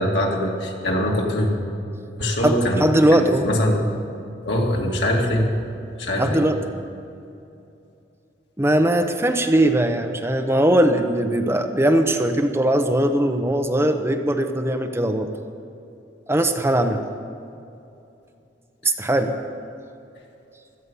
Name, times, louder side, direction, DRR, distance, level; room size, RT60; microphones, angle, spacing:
voice 1, 0.0-1.5 2.2-3.8 4.4-5.5 6.0-6.4, equal, 85° left, -1 dB, 2.5 m, -22 dB
voice 2, 2.4-3.5 6.2-6.6 8.6-15.3 16.3-17.0 18.8-19.4, right 1 dB, 15° right, 5 dB, 0.8 m, -20 dB
16.5 x 13.0 x 5.5 m, 2.7 s
head